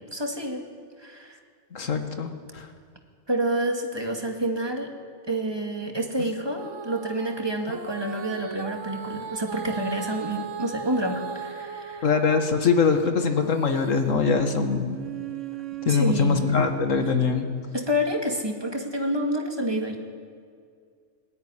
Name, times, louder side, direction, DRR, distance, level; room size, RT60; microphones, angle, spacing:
voice 1, 0.1-0.6 1.0-1.4 3.3-4.9 5.3-12.1 15.9-16.5 17.7-20.0, right 1 dB, 20° right, 2 dB, 2.2 m, -28 dB
voice 2, 1.7-2.7 12.0-15.0 15.9-17.5, left 5 dB, 90° left, 6 dB, 1.9 m, -23 dB
Female singing, 6.6-12.5 12.9-17.2 17.8-17.9, right 7 dB, 75° right, 1.6 m, -37 dB
20.0 x 13.0 x 9.8 m, 2.2 s
omnidirectional pair, 1.3 m